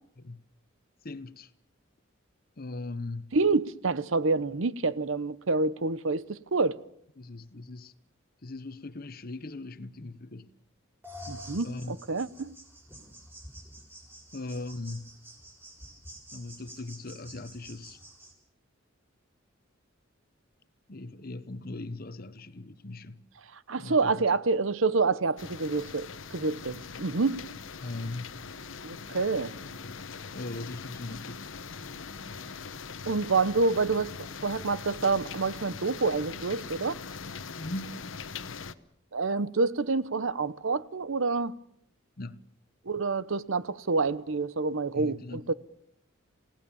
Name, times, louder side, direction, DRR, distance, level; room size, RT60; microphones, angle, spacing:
voice 1, 1.0-1.5 2.6-3.4 7.2-7.9 8.4-10.5 11.6-11.9 14.3-15.2 16.3-18.0 20.9-23.3 23.8-24.2 27.8-28.4 29.8-30.0 30.3-31.5 37.6-38.0 42.2-42.4 44.9-45.5, left 2 dB, 45° left, 1.0 m, -39 dB
voice 2, 3.3-6.8 11.3-12.5 23.7-27.4 28.8-29.5 33.1-34.1 34.4-37.0 39.1-41.5 42.9-45.5, right 3 dB, 75° right, 0.9 m, -27 dB
sound 1, 11.0-18.3, equal, 10° right, 6.8 m, -48 dB
sound 2, 25.4-38.7, left 5 dB, 70° left, 1.0 m, -41 dB
28.5 x 17.5 x 7.1 m
head